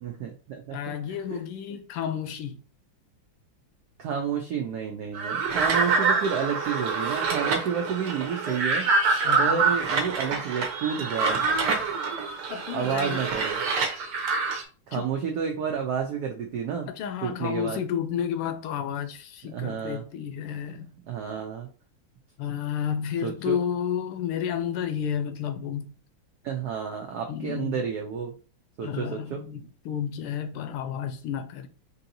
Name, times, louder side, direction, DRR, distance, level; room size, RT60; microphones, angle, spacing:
voice 1, 0.0-0.8 1.3-1.4 1.7-1.8 4.0-8.9 9.4-11.4 12.7-13.6 14.9-16.9 17.2-17.8 19.5-20.0 21.1-21.7 23.2-23.6 26.4-28.3 28.8-29.4, right 7 dB, 90° right, 0.9 m, -30 dB
voice 2, 0.7-2.6 9.2-9.7 12.5-13.3 14.9-15.1 16.9-20.9 22.4-25.9 27.3-27.8 28.8-31.7, left 8 dB, 80° left, 1.5 m, -31 dB
sound 1, 5.1-14.6, right 4 dB, 65° right, 1.2 m, -26 dB
4.6 x 2.7 x 2.6 m
omnidirectional pair, 2.4 m